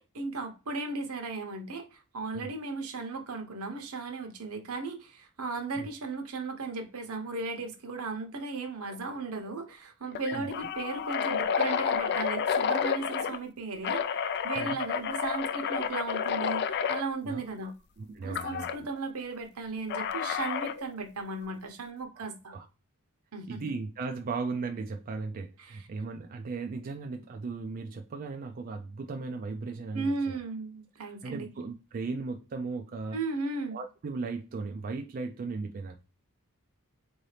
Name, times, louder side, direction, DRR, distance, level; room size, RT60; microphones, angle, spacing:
voice 1, 0.1-14.1 14.4-17.7 18.2-22.5 23.3-23.8 25.6-25.8 29.9-31.5 33.1-33.8, right 3 dB, 75° right, 0.9 m, -36 dB
sound 1, 8.9-9.2 9.5-9.6 10.1-13.4 13.8-17.0 18.4-18.8 19.9-20.8, left 7 dB, 50° left, 0.3 m, -30 dB
voice 2, 10.3-10.7 14.6-14.8 17.3-17.7 18.0-18.7 22.2-22.3 22.5-22.7 23.5-30.4 31.0-33.2 33.7-36.0, right 4 dB, 40° right, 0.3 m, -37 dB
3.9 x 2.7 x 3.2 m
head